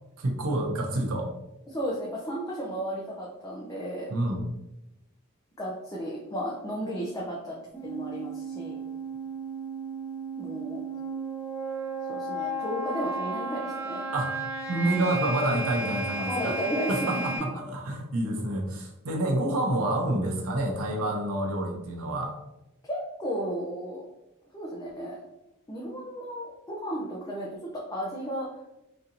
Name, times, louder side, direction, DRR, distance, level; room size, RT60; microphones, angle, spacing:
voice 1, 0.2-1.3 4.1-4.4 14.1-14.4 14.7-16.6 16.9-22.4, right 1 dB, 75° right, 2 dB, 0.6 m, -28 dB
voice 2, 1.7-4.1 5.6-7.6 7.8-8.8 10.4-10.8 12.0-14.0 16.2-17.4 21.0-21.1 22.9-24.0 24.5-25.2 25.7-28.5, equal, 15° left, -5 dB, 0.5 m, -34 dB
sound 1, 7.7-17.4, right 2 dB, 10° right, 0.8 m, -34 dB
4.1 x 2.6 x 2.6 m, 0.91 s
head